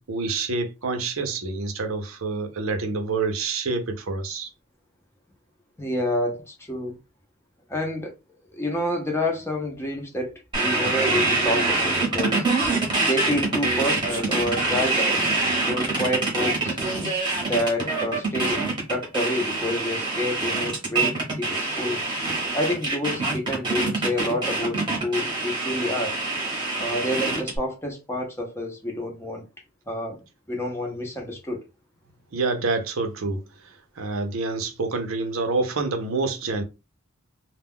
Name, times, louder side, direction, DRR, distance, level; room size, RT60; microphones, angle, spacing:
voice 1, 0.0-4.5 32.3-33.4 34.0-36.6, right 3 dB, 75° right, 0.6 m, -27 dB
voice 2, 5.8-7.0 7.7-8.1 8.5-10.3 10.6-12.5 13.0-15.3 15.7-16.8 17.4-18.6 18.9-22.0 22.5-26.2 26.8-29.5 29.9-30.2 30.5-31.6, left 1 dB, 10° left, 0.6 m, -28 dB
sound 1, 10.5-27.6, right 3 dB, 20° right, 0.9 m, -25 dB
2.2 x 2.2 x 3.5 m
head